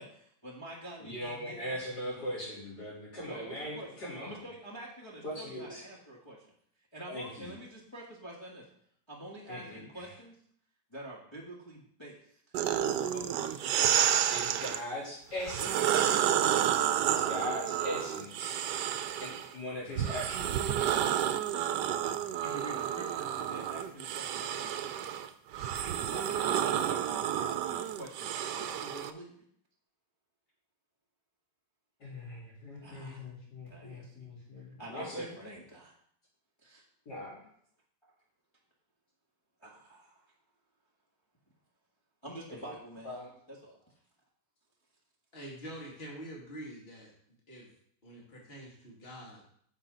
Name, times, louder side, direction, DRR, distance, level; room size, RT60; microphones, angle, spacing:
voice 1, 0.0-2.2 3.3-6.4 6.9-8.6 9.1-10.3 10.9-12.5 13.1-14.1 15.6-16.8 22.4-25.0 26.0-29.4 32.8-33.2 33.7-34.3 34.6-35.9 36.6-36.8 38.0-38.1 39.6-40.2 42.2-43.2 43.5-43.9, right 1 dB, 15° left, -6 dB, 1.7 m, -47 dB
voice 2, 1.0-4.4 5.2-5.8 7.1-7.5 9.5-10.1 14.3-16.2 17.1-18.6 19.2-21.0 32.0-35.3 37.1-37.4 42.6-42.7 43.0-43.3, left 1 dB, 70° left, -6 dB, 4.2 m, -40 dB
sound 1, 12.5-14.8 15.4-19.5 20.0-29.1, right 10 dB, 85° right, 1.2 m, -30 dB
voice 3, 45.3-47.1 47.5-47.7 48.0-49.4, right 1 dB, 35° left, -3 dB, 2.6 m, -45 dB
10.0 x 6.9 x 3.9 m, 0.66 s
omnidirectional pair, 1.8 m